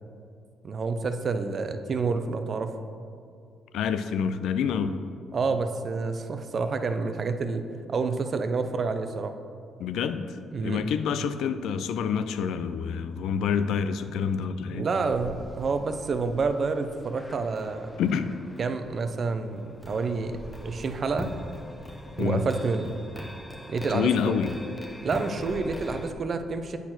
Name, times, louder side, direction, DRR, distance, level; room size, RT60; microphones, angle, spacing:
voice 1, 0.6-2.7 5.3-7.6 7.9-9.3 10.5-10.9 14.7-17.9 18.6-21.3 22.2-23.0 23.7-24.3 25.0-26.8, right 4 dB, 45° right, 8 dB, 0.5 m, -28 dB
voice 2, 3.7-5.0 9.8-14.9 18.0-18.3 22.2-22.5 23.9-24.5, left 7 dB, 80° left, 11 dB, 0.4 m, -27 dB
sound 1, 15.0-26.1, left 1 dB, 15° left, 0.7 m, -41 dB
8.1 x 4.4 x 5.9 m, 2.4 s
cardioid pair, 90°, 0 cm